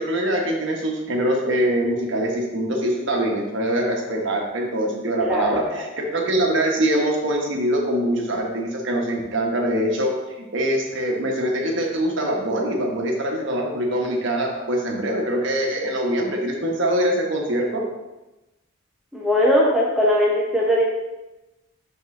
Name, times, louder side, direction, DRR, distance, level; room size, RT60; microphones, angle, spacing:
voice 1, 0.0-10.1 10.4-17.8, right 1 dB, 60° right, 0 dB, 1.1 m, -23 dB
voice 2, 5.2-5.8 19.1-20.8, equal, ahead, -5 dB, 0.7 m, -20 dB
5.4 x 5.3 x 3.7 m, 1.0 s
head